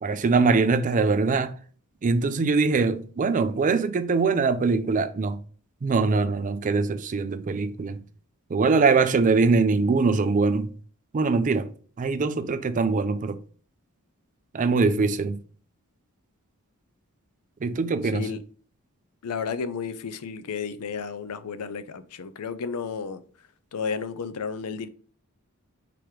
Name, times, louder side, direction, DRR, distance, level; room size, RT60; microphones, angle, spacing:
voice 1, 0.0-1.6 2.0-5.4 5.8-8.0 8.5-10.8 11.1-13.4 14.5-15.4 17.6-18.3, right 4 dB, 35° right, 0.4 m, -23 dB
voice 2, 19.2-23.2 23.7-24.9, left 5 dB, 85° left, 0.5 m, -32 dB
4.8 x 3.0 x 3.5 m
head